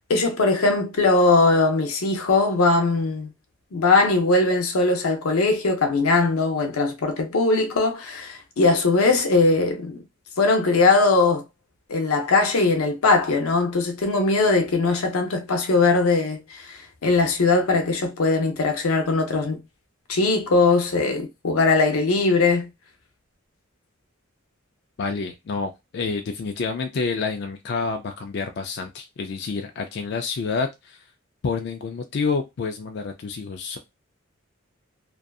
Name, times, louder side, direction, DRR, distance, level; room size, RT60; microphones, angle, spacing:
voice 1, 0.1-3.3 3.7-10.0 10.4-11.4 11.9-19.6 20.1-22.7, left 3 dB, 85° left, 0.6 m, -20 dB
voice 2, 25.0-31.0 31.4-33.8, left 4 dB, 50° left, 0.3 m, -28 dB
2.6 x 2.4 x 2.3 m
head